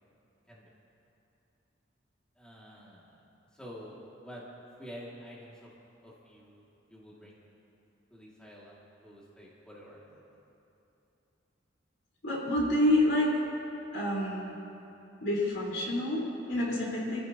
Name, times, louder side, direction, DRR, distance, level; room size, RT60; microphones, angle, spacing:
voice 1, 2.4-3.1 3.5-4.4 4.8-5.7 6.0-6.6 6.9-7.4 8.1-10.2, equal, 5° left, -7 dB, 2.4 m, -48 dB
voice 2, 12.2-13.4 13.9-14.6 15.2-17.2, left 1 dB, 75° left, -5 dB, 4.5 m, -28 dB
28.0 x 14.5 x 3.0 m, 2.8 s
head